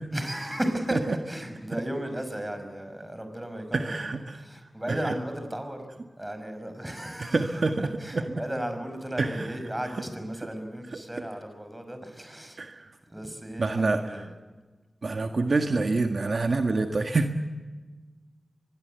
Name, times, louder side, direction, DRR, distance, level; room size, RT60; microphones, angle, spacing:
voice 1, 0.1-5.9 6.2-12.6 13.1-14.3, right 1 dB, 15° right, 7 dB, 5.8 m, -35 dB
voice 2, 3.7-4.5 4.9-5.1 7.2-8.4 9.2-9.5 11.1-11.2 12.6-12.9 13.6-14.2 15.0-17.3, right 3 dB, 65° right, 5 dB, 1.7 m, -27 dB
24.5 x 22.0 x 8.2 m, 1.3 s
wide cardioid pair, 70°, 0 cm